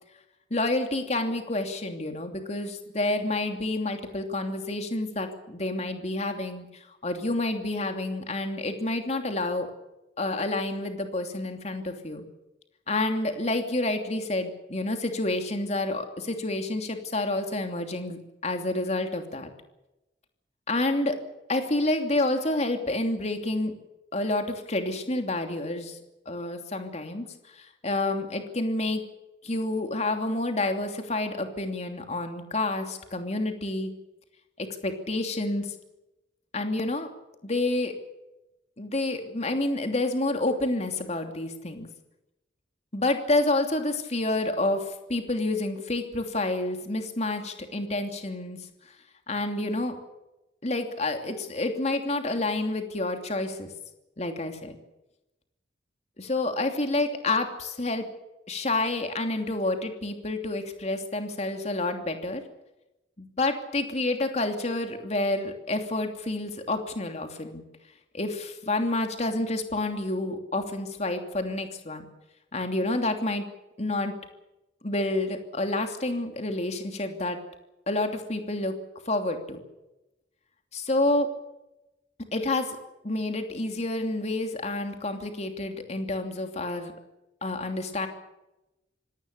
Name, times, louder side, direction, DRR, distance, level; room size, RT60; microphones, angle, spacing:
voice 1, 0.5-6.7 7.0-9.7 10.2-12.2 12.9-19.5 20.7-21.2 21.5-23.7 24.1-26.0 26.3-27.3 27.6-29.0 29.4-33.9 34.6-35.7 36.5-37.1 37.4-37.9 38.8-41.9 42.9-48.6 49.3-50.0 50.6-53.7 54.2-54.8 56.2-58.1 58.5-62.4 63.2-67.6 68.1-72.0 72.5-73.4 73.8-74.1 74.8-77.4 77.9-78.7 79.1-79.6 80.7-81.3 82.3-82.8 83.0-86.9 87.4-88.1, left 2 dB, 35° left, 5 dB, 2.9 m, -29 dB
25.5 x 18.0 x 6.8 m, 0.96 s
head